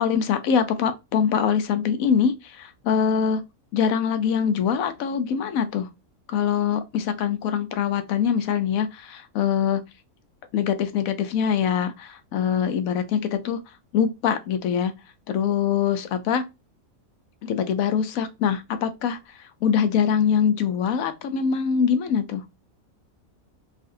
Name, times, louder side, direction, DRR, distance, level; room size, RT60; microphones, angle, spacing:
voice 1, 0.0-3.4 3.7-5.9 6.3-9.8 10.5-13.6 13.9-14.9 15.3-16.4 17.4-22.4, left 7 dB, 75° left, 1.0 m, -23 dB
3.8 x 2.4 x 2.5 m
omnidirectional pair, 1.5 m